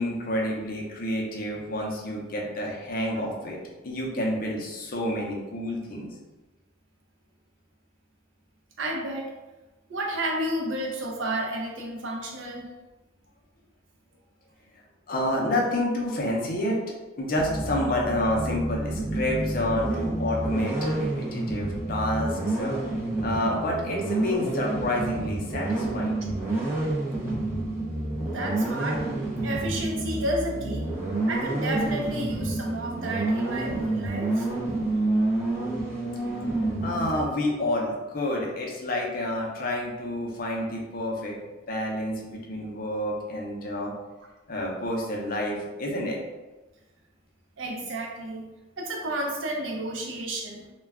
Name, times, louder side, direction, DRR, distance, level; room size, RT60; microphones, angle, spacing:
voice 1, 0.0-3.6 3.8-6.1 15.1-16.8 17.2-22.7 23.2-26.2 36.8-41.4 41.7-43.9 44.5-46.2, left 1 dB, 45° left, -2 dB, 0.5 m, -29 dB
voice 2, 8.8-9.3 9.9-12.7 28.2-29.0 29.4-30.9 31.3-34.5 47.6-48.5 48.8-50.6, right 1 dB, 70° right, 0 dB, 0.5 m, -31 dB
sound 1, 17.3-37.2, right 2 dB, 10° right, 0.5 m, -29 dB
2.2 x 2.2 x 3.4 m, 1.1 s
head